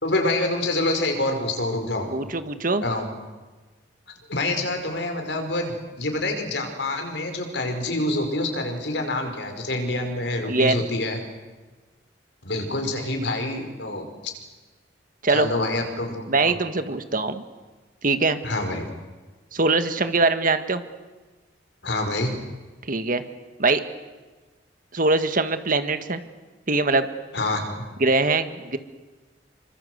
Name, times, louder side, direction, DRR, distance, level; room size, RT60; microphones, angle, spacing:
voice 1, 0.0-2.1 2.8-3.1 4.3-11.2 12.4-14.1 15.3-16.5 18.4-18.9 21.8-22.4 27.3-27.8, left 2 dB, 75° left, 4 dB, 5.3 m, -26 dB
voice 2, 2.1-2.8 10.5-10.8 15.2-15.5 16.3-17.4 18.0-18.4 19.5-20.8 22.9-23.2 23.6-23.8 24.9-26.2 26.7-27.1 28.0-28.8, right 3 dB, 50° right, 9 dB, 1.8 m, -22 dB
27.5 x 25.0 x 8.1 m, 1.3 s
head